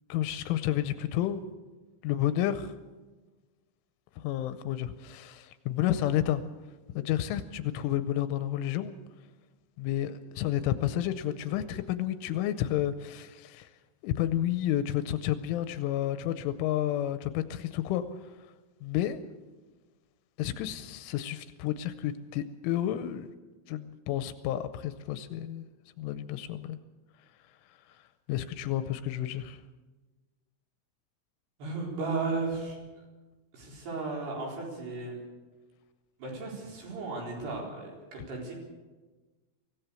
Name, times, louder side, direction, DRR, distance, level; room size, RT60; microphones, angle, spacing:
voice 1, 0.1-1.4 2.0-2.7 4.2-6.4 6.9-8.9 9.8-13.7 14.0-18.0 18.8-19.2 20.4-23.3 23.7-25.7 26.0-26.8 28.3-29.6, left 12 dB, 80° left, 11 dB, 3.1 m, -31 dB
voice 2, 31.6-32.8 33.5-35.2 36.2-38.5, right 3 dB, 55° right, -1 dB, 6.1 m, -35 dB
24.0 x 16.0 x 6.9 m, 1.3 s
omnidirectional pair, 5.8 m